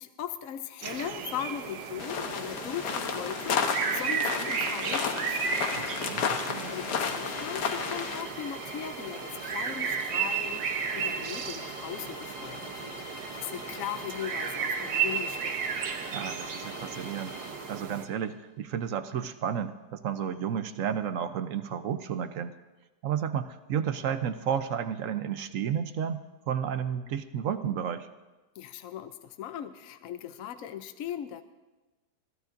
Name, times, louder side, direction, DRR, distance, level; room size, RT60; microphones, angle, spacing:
voice 1, 0.0-5.4 6.7-10.6 10.9-15.6 28.6-31.4, left 10 dB, 65° left, 9 dB, 0.9 m, -39 dB
sound 1, 0.8-18.0, right 6 dB, 85° right, 1.6 m, -34 dB
sound 2, 2.0-8.2, left 6 dB, 80° left, 1.6 m, -32 dB
voice 2, 5.7-6.8 16.1-17.4 17.7-22.5 23.0-28.1, right 8 dB, 65° right, 10 dB, 0.9 m, -32 dB
sound 3, 6.4-18.3, left 2 dB, 20° left, 1.3 m, -44 dB
25.0 x 16.0 x 2.6 m, 1.2 s
omnidirectional pair, 1.8 m